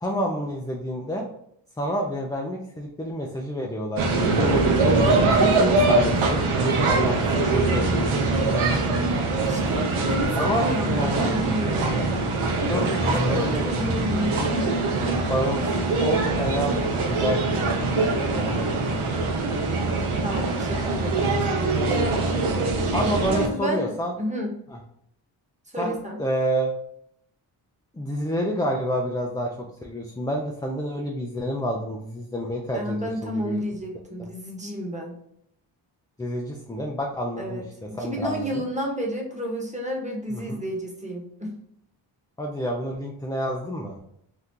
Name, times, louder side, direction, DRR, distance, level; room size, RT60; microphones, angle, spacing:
voice 1, 0.0-1.3 1.8-4.0 4.4-4.6 5.0-6.4 6.8-8.3 10.4-11.4 11.9-12.0 12.7-13.8 15.3-19.2 22.9-24.1 25.8-26.7 27.9-29.5 29.8-33.6 34.2-34.3 36.2-38.6 40.3-40.6 42.4-44.0, equal, 10° left, -1 dB, 0.5 m, -29 dB
sound 1, 4.0-23.5, right 3 dB, 80° right, 0.8 m, -23 dB
voice 2, 9.4-10.3 10.6-12.0 12.7-14.7 20.2-22.0 23.2-24.5 25.7-26.2 32.7-35.1 37.4-37.6 37.9-41.5, equal, 15° right, 0 dB, 1.2 m, -31 dB
2.8 x 2.3 x 3.6 m, 0.71 s
supercardioid pair, 45°, 49 cm